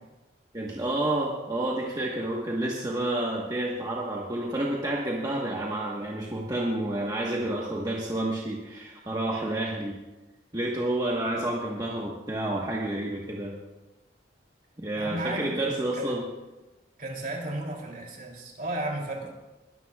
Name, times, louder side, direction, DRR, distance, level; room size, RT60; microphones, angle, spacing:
voice 1, 0.5-9.9 10.5-13.6 14.8-16.2, right 1 dB, 20° right, -3 dB, 1.3 m, -29 dB
voice 2, 14.9-16.2 17.0-19.3, right 1 dB, 50° right, 0 dB, 3.1 m, -34 dB
21.5 x 13.0 x 2.4 m, 1.1 s
head